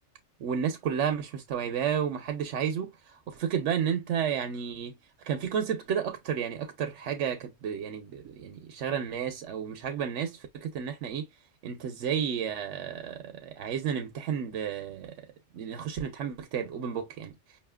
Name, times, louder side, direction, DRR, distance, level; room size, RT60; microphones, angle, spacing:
voice 1, 0.4-4.9 5.2-11.3 11.6-15.1 15.5-17.3, right 8 dB, 80° right, 1.0 m, -32 dB
5.5 x 2.8 x 2.2 m
omnidirectional pair, 1.2 m